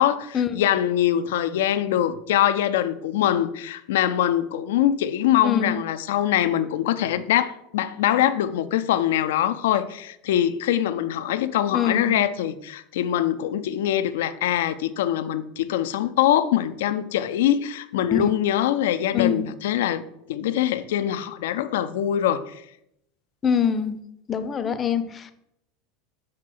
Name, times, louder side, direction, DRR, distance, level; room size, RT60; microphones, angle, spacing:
voice 1, 0.0-20.0 20.3-22.6, left 11 dB, 75° left, 0.4 m, -23 dB
voice 2, 5.4-5.8 11.7-12.3 18.1-18.3 19.1-19.5 23.4-24.0 24.3-25.3, left 7 dB, 30° left, 0.6 m, -24 dB
6.3 x 4.0 x 4.4 m
hypercardioid pair, 90°, 0 cm